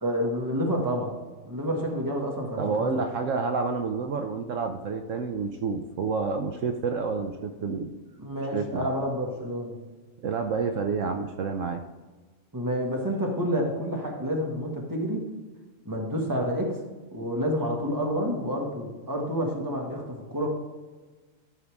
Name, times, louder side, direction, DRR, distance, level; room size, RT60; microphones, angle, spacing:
voice 1, 0.0-1.1 1.5-3.1 8.2-9.8 12.5-15.2 15.9-16.8 17.1-20.5, equal, 15° right, 0 dB, 1.8 m, -29 dB
voice 2, 2.6-7.9 8.5-8.9 10.2-11.8, right 4 dB, 70° right, 6 dB, 1.0 m, -29 dB
13.0 x 5.5 x 3.5 m, 1.3 s
omnidirectional pair, 1.4 m